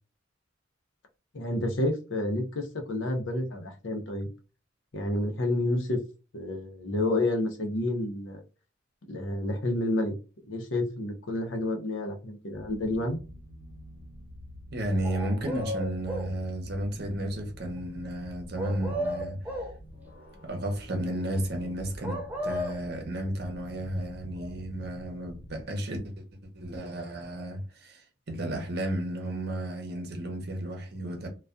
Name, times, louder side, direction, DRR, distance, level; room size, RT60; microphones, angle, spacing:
voice 1, 1.3-4.3 4.9-6.0 6.3-8.4 9.1-10.1 10.5-13.2, left 1 dB, 80° left, 0.7 m, -29 dB
Evolvo Orb, 12.5-25.6, left 1 dB, 55° left, 1.1 m, -47 dB
voice 2, 14.7-19.5 20.4-26.2 26.5-31.3, right 1 dB, 55° right, 0.7 m, -33 dB
sound 1, 15.0-16.4 18.6-19.8 22.0-22.8, equal, 10° right, 0.3 m, -34 dB
2.3 x 2.2 x 2.4 m
head